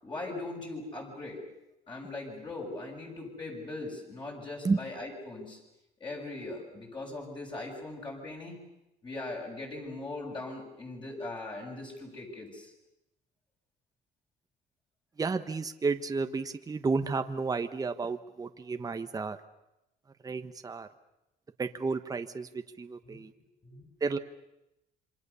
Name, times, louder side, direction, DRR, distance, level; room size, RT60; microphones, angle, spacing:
voice 1, 0.0-1.4 1.9-5.6 6.0-8.6 9.0-12.7 23.0-23.2 23.6-23.9, left 2 dB, 25° left, -2 dB, 6.9 m, -40 dB
voice 2, 15.2-19.4 20.2-20.9 21.6-23.3 24.0-24.2, right 4 dB, 20° right, 8 dB, 1.2 m, -32 dB
27.0 x 24.5 x 7.0 m, 0.90 s
cardioid pair, 110°, 17 cm